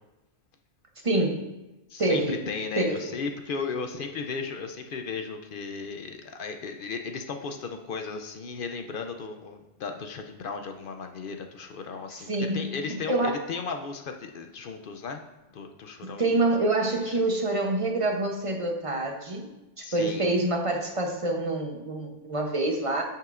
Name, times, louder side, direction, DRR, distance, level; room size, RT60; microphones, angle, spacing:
voice 1, 1.0-1.5 2.0-2.4 2.8-3.1 12.3-12.7 13.1-13.4 16.0-19.5 19.8-23.0, right 2 dB, 30° right, 1 dB, 0.8 m, -26 dB
voice 2, 1.9-15.2 15.5-16.4 17.1-17.2 19.8-20.3, left 5 dB, 60° left, 5 dB, 0.6 m, -35 dB
8.9 x 5.7 x 2.5 m, 1.0 s
omnidirectional pair, 1.2 m